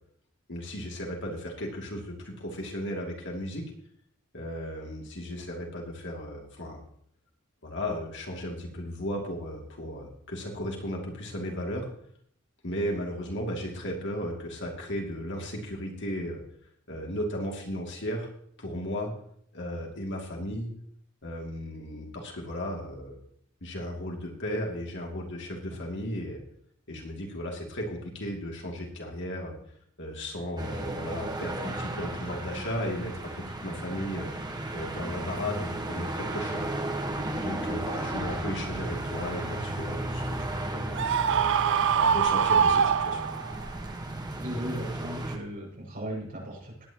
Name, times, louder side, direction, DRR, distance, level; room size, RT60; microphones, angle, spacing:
voice 1, 0.5-3.6 4.3-6.8 7.6-11.9 12.6-16.4 16.9-18.3 18.6-19.1 19.5-20.7 21.2-23.2 23.6-26.4 26.9-29.5 30.0-34.3 34.7-36.7 37.3-41.0 41.8-43.3, equal, 60° left, 0 dB, 2.6 m, -35 dB
sound 1, 30.6-45.4, right 1 dB, 20° right, 1.3 m, -34 dB
Screaming, 41.0-43.6, right 7 dB, 60° right, 0.5 m, -23 dB
voice 2, 44.1-46.9, equal, 45° right, -2 dB, 6.5 m, -37 dB
19.0 x 9.5 x 3.0 m, 0.64 s
head